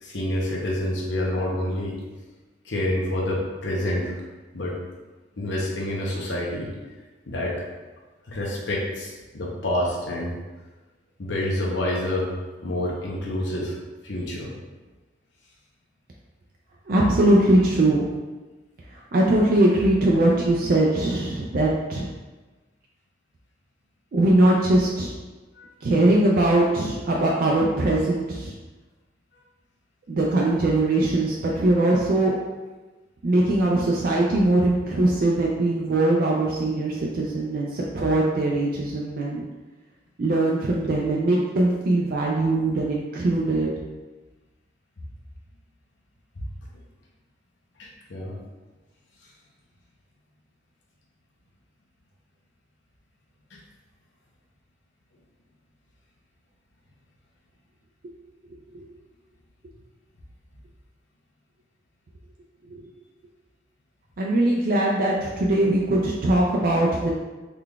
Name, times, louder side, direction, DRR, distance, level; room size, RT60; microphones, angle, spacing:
voice 1, 0.0-1.9 2.6-4.2 4.5-4.8 5.4-6.7 7.3-7.6 8.3-10.3 11.2-12.3 12.6-13.7 14.0-14.5 25.6-25.7 46.4-46.5 47.8-48.4 53.5-53.6, left 1 dB, 75° left, -3 dB, 0.8 m, -27 dB
voice 2, 16.9-18.1 18.9-22.1 24.1-25.1 25.8-28.5 30.1-32.4 33.2-39.5 40.2-43.7 58.7-58.9 62.7-62.9 64.2-67.1, right 1 dB, 50° right, -3 dB, 0.4 m, -21 dB
3.8 x 3.3 x 2.3 m, 1.2 s
head